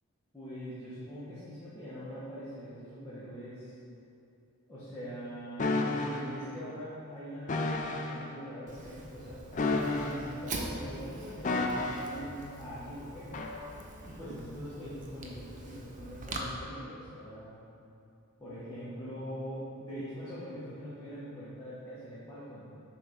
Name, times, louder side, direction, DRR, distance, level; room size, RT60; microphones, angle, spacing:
voice 1, 0.3-3.8 4.7-9.4 9.8-13.4 14.0-17.6 18.4-22.7, equal, 15° left, -12 dB, 1.2 m, -42 dB
sound 1, 5.6-6.2 7.5-8.1 9.5-10.4 11.4-12.2 13.3-13.6, left 2 dB, 35° left, 0.4 m, -31 dB
Fire, 8.7-16.4, right 2 dB, 35° right, 0.6 m, -44 dB
6.8 x 3.5 x 5.7 m, 2.7 s
head